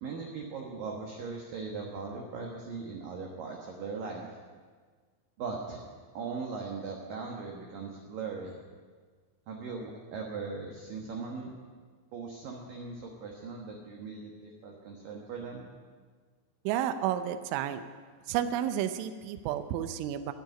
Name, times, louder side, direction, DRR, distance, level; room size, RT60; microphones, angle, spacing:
voice 1, 0.0-4.3 5.4-5.8 6.1-8.6 9.5-11.5 12.1-15.6, right 4 dB, 65° right, 0 dB, 2.4 m, -39 dB
voice 2, 16.7-17.8 18.3-20.3, right 10 dB, 85° right, 10 dB, 3.1 m, -31 dB
11.0 x 10.5 x 9.9 m, 1.6 s
omnidirectional pair, 5.5 m